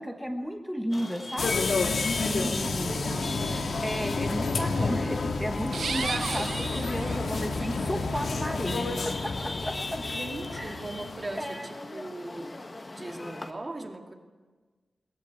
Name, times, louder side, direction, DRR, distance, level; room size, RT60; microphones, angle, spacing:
voice 1, 0.0-1.6 2.2-3.0 3.8-10.0 10.5-10.8 11.4-11.7, equal, ahead, 3 dB, 1.2 m, -34 dB
Chatter / Vehicle horn car horn honking / Traffic noise roadway noise, 0.9-13.5, left 2 dB, 30° left, 1.5 m, -40 dB
sound 1, 1.4-11.3, left 3 dB, 75° left, 1.7 m, -30 dB
voice 2, 2.2-3.5 10.0-12.6 12.9-14.1, right 2 dB, 30° right, 4 dB, 2.2 m, -39 dB
sound 2, 5.7-7.7, right 5 dB, 80° right, 0.8 m, -34 dB
22.0 x 19.0 x 8.5 m, 1.4 s
wide cardioid pair, 135°, 0 cm